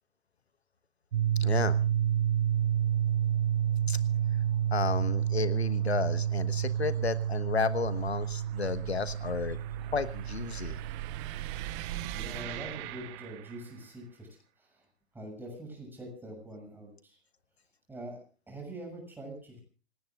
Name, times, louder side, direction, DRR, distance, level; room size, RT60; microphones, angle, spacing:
sound 1, 1.1-13.0, right 10 dB, 45° right, 0.6 m, -30 dB
voice 1, 1.4-1.8 3.9-4.0 4.7-9.6 9.9-10.8, left 5 dB, 75° left, 13 dB, 1.3 m, -32 dB
sound 2, 2.6-13.9, right 14 dB, 25° right, 1.0 m, -43 dB
voice 2, 12.1-14.3 14.6-14.8 15.1-17.2 17.9-18.2 18.5-19.6, right 1 dB, 5° right, 2 dB, 7.0 m, -44 dB
27.5 x 18.0 x 2.4 m, 0.37 s
figure-of-eight pair, 115°, 33 cm